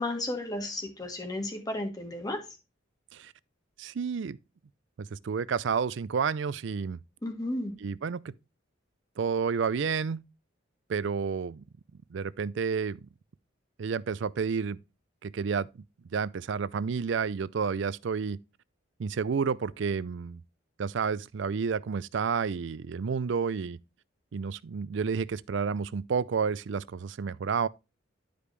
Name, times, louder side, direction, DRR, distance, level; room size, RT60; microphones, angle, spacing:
voice 1, 0.0-2.4 7.2-7.8, left 1 dB, 20° left, 1.6 m, -33 dB
voice 2, 3.8-4.4 5.0-7.0 7.8-8.3 9.2-10.2 10.9-11.6 12.1-13.1 13.8-14.8 15.2-15.7 16.1-18.4 19.0-20.4 20.8-23.8 24.3-27.7, right 6 dB, 65° right, 0.4 m, -30 dB
11.5 x 5.1 x 3.3 m
head